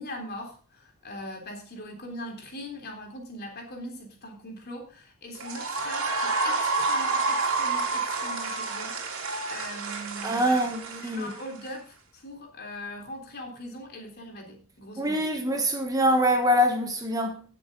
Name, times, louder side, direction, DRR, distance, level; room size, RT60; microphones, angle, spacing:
voice 1, 0.0-10.7 11.0-15.4, left 1 dB, 45° left, 3.6 m, -41 dB
sound 1, 5.3-11.7, right 3 dB, 65° right, 2.9 m, -29 dB
voice 2, 10.2-11.3 15.0-17.4, equal, 15° right, 1.2 m, -24 dB
17.5 x 6.7 x 3.8 m
head